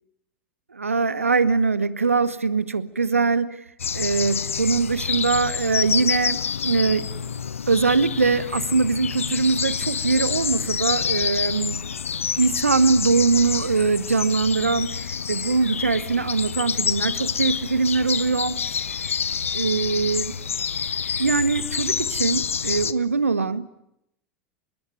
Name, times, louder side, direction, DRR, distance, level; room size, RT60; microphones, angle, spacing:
voice 1, 0.7-3.6 3.9-7.1 7.7-11.8 12.4-18.6 19.5-20.3 21.2-23.7, right 4 dB, 85° right, 17 dB, 1.3 m, -22 dB
sound 1, 3.8-22.9, left 7 dB, 75° left, 0.9 m, -28 dB
27.0 x 21.5 x 9.2 m, 0.82 s
figure-of-eight pair, 85°, 7 cm